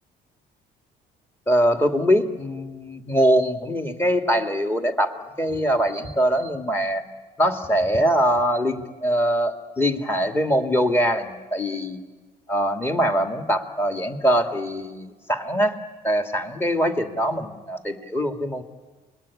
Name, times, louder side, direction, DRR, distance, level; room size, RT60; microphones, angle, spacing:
voice 1, 1.5-7.0 7.4-12.0 12.5-15.8 16.0-18.6, equal, 15° left, 6 dB, 2.4 m, -23 dB
29.5 x 21.5 x 8.7 m, 1.3 s
cardioid pair, 110°, 17 cm